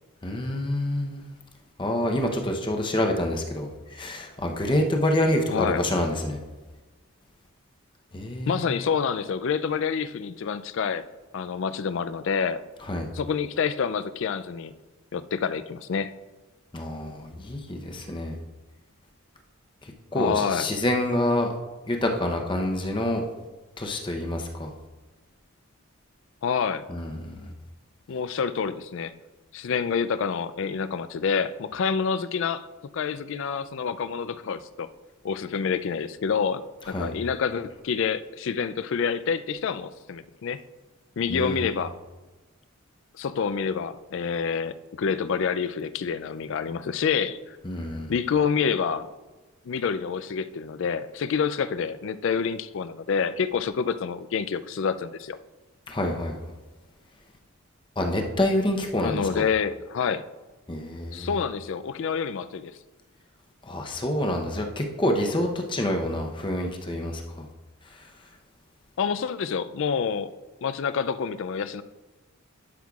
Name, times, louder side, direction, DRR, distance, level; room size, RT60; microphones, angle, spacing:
voice 1, 0.2-1.2 1.8-6.4 8.1-8.6 12.9-13.1 16.7-18.4 19.8-21.5 21.9-23.2 23.8-24.7 26.9-27.5 36.9-37.1 41.3-41.7 47.6-48.1 55.9-56.4 58.0-59.4 60.7-61.4 63.6-67.5 67.9-68.1, left 1 dB, 20° left, 2 dB, 0.7 m, -27 dB
voice 2, 5.5-5.8 8.5-11.0 11.3-12.6 13.1-14.7 15.1-16.1 20.1-20.7 26.4-26.8 28.1-29.1 29.5-32.6 32.9-34.9 35.2-40.6 41.2-41.9 43.2-47.6 48.1-49.1 49.6-55.4 59.0-60.3 61.1-62.7 69.0-70.3 70.6-71.8, left 6 dB, 55° left, 13 dB, 0.3 m, -27 dB
12.0 x 6.3 x 2.4 m, 1.2 s
head